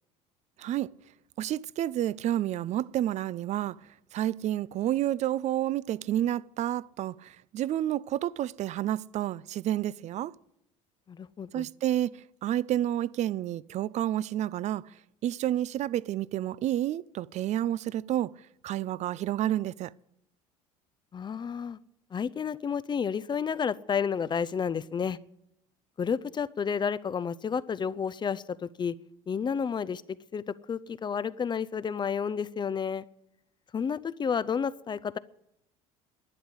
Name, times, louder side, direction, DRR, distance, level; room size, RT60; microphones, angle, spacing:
voice 1, 0.6-0.9 1.4-3.8 4.1-10.3 11.5-14.8 15.2-18.3 18.6-19.9, right 12 dB, 45° right, 0.4 m, -30 dB
voice 2, 11.1-11.7 21.1-21.8 22.1-25.2 26.0-29.0 29.3-30.0 30.3-33.0 33.7-35.2, left 6 dB, 25° left, 0.5 m, -31 dB
11.5 x 10.5 x 7.9 m
hypercardioid pair, 80°, 17 cm